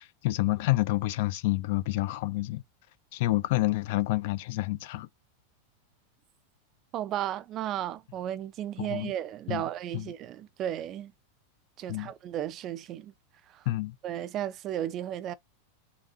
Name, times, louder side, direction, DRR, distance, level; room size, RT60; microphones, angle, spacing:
voice 1, 0.0-2.6 3.1-5.1 8.8-9.1 9.5-9.6 9.9-10.1 11.9-12.1 13.7-14.0, left 18 dB, 55° left, 0.4 m, -28 dB
voice 2, 6.9-11.1 11.8-13.1 13.5-13.6 14.0-15.3, right 11 dB, 30° right, 0.4 m, -34 dB
3.9 x 3.5 x 2.4 m
supercardioid pair, 160°, 0 cm